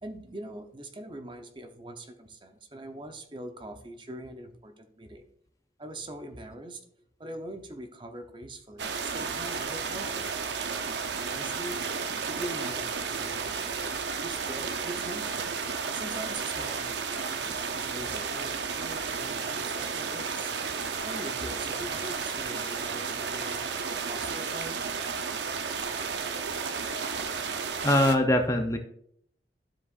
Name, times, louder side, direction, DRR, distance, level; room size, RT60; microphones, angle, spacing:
voice 1, 0.0-5.2 5.8-6.8 7.2-10.3 11.3-11.8 12.3-13.8 14.2-15.6 15.9-20.6 21.0-24.8, right 1 dB, 25° right, 6 dB, 0.8 m, -42 dB
sound 1, 8.8-28.2, right 5 dB, 75° right, 0.7 m, -33 dB
voice 2, 27.8-28.8, left 1 dB, 20° left, 5 dB, 0.6 m, -22 dB
12.5 x 4.9 x 2.5 m, 0.66 s
head